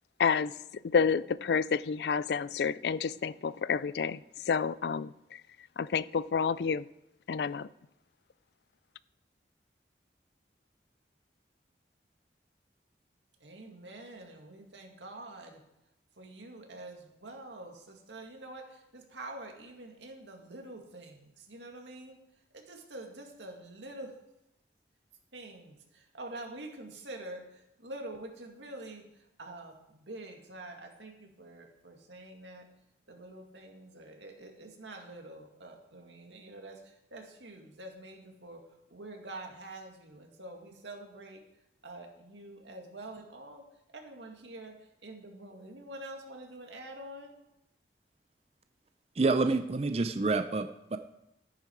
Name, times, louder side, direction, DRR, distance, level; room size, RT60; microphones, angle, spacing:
voice 1, 0.2-0.5 0.8-4.2 4.5-5.4 5.8-6.8 7.3-7.7, left 6 dB, 70° left, 0.4 m, -29 dB
voice 2, 13.4-15.6 16.2-22.2 22.5-24.1 25.3-32.7 33.1-41.4 41.8-43.7 43.9-47.3, right 2 dB, 90° right, 2.2 m, -46 dB
voice 3, 49.2-51.0, right 3 dB, 35° right, 0.5 m, -28 dB
13.0 x 10.5 x 4.6 m
head